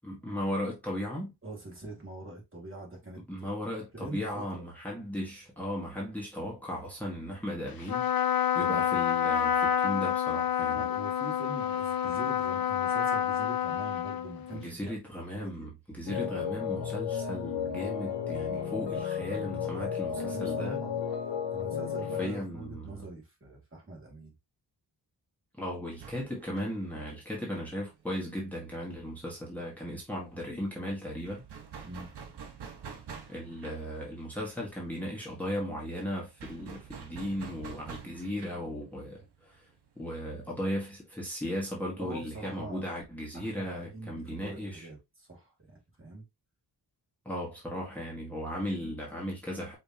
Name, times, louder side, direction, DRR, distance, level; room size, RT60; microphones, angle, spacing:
voice 1, 0.0-1.3 3.2-8.1 8.6-10.9 14.5-20.8 22.2-22.9 25.6-31.4 33.3-39.6 40.0-44.9 47.3-49.8, equal, 5° left, 1.7 m, -36 dB
voice 2, 1.4-3.5 3.9-4.7 10.7-15.0 15.3-15.7 19.6-19.7 20.1-21.0 21.5-24.3 31.8-32.1 42.0-42.9 43.3-46.2, right 2 dB, 30° right, 2.5 m, -44 dB
Trumpet, 7.8-14.7, left 9 dB, 60° left, 0.8 m, -28 dB
sound 1, 16.1-22.3, left 8 dB, 80° left, 1.1 m, -33 dB
sound 2, 25.9-29.3 29.6-29.7 30.0-41.0, right 6 dB, 70° right, 1.3 m, -48 dB
5.3 x 3.5 x 2.8 m
wide cardioid pair, 110°, 41 cm